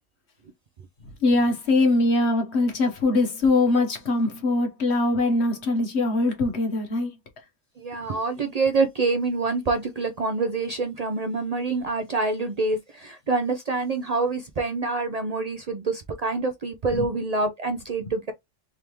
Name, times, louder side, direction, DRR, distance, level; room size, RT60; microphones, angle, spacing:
voice 1, 1.2-7.1 16.9-17.1 18.0-18.1, left 2 dB, 55° left, 1.3 m, -22 dB
voice 2, 7.8-18.3, right 3 dB, 85° right, 0.3 m, -26 dB
3.7 x 3.4 x 2.9 m
omnidirectional pair, 1.4 m